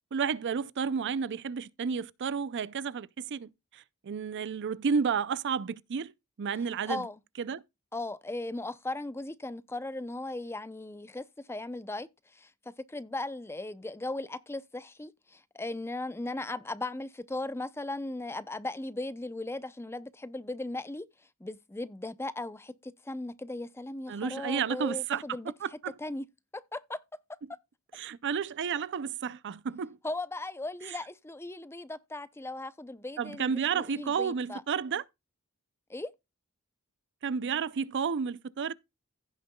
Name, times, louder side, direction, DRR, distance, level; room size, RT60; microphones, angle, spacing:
voice 1, 0.1-6.1 6.4-7.0 7.4-7.6 24.1-25.2 25.6-25.9 28.0-30.0 33.2-35.0 37.2-38.7, right 6 dB, 55° right, 0.5 m, -31 dB
voice 2, 6.9-7.2 7.9-12.5 12.9-21.1 21.4-25.5 26.0-26.2 26.5-27.0 30.0-34.6 35.9-36.1, left 2 dB, 10° left, 0.5 m, -37 dB
16.0 x 6.6 x 2.2 m
head